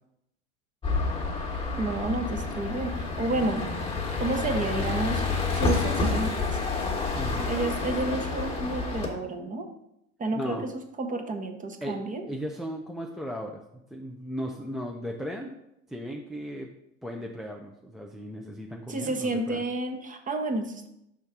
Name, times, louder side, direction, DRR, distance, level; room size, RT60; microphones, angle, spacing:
sound 1, 0.8-9.1, left 4 dB, 15° left, 1.2 m, -29 dB
voice 1, 1.7-3.7 4.2-5.2 5.5-6.6 7.5-9.7 10.2-12.2 18.9-20.9, right 2 dB, 20° right, 6 dB, 0.8 m, -30 dB
sound 2, 3.1-3.2 3.4-3.5 5.4-6.3 7.9-8.8, left 12 dB, 70° left, 0.5 m, -41 dB
voice 2, 7.1-7.5 10.3-10.7 11.8-13.6 13.9-15.5 15.9-16.7 17.0-19.6, equal, ahead, 0 dB, 0.4 m, -36 dB
5.2 x 3.6 x 5.8 m, 0.81 s
hypercardioid pair, 85°, 38 cm